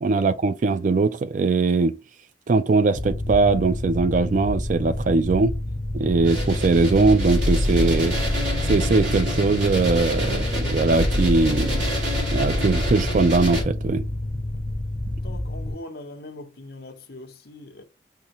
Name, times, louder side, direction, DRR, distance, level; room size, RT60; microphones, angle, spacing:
voice 1, 0.0-1.9 2.5-5.5 5.9-8.2 8.7-11.8 12.3-14.0, right 3 dB, 40° right, 0.3 m, -21 dB
Mechanical fan, 2.9-15.7, left 1 dB, 15° right, 1.8 m, -29 dB
sound 1, 6.2-13.6, left 1 dB, 80° right, 2.1 m, -25 dB
voice 2, 6.7-7.0 14.5-14.6 15.2-17.8, left 2 dB, 55° left, 0.8 m, -42 dB
5.5 x 2.8 x 2.9 m
head